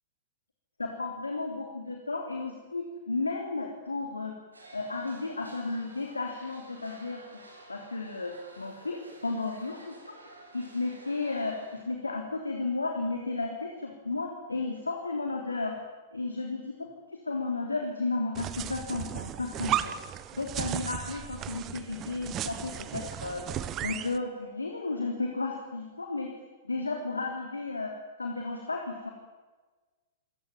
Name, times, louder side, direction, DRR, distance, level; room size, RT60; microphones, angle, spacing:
voice 1, 0.8-4.3 4.7-7.2 7.7-10.2 10.5-11.6 11.8-15.8 16.1-16.9 17.2-20.0 20.3-23.4 23.8-26.3 26.6-27.9 28.2-29.1, left 3 dB, 80° left, 2 dB, 3.4 m, -33 dB
sound 1, 4.5-11.8, right 2 dB, 80° right, 6.2 m, -52 dB
sound 2, 18.3-24.2, right 11 dB, 25° right, 1.3 m, -35 dB
27.5 x 17.5 x 9.1 m, 1.3 s
figure-of-eight pair, 105°, 0 cm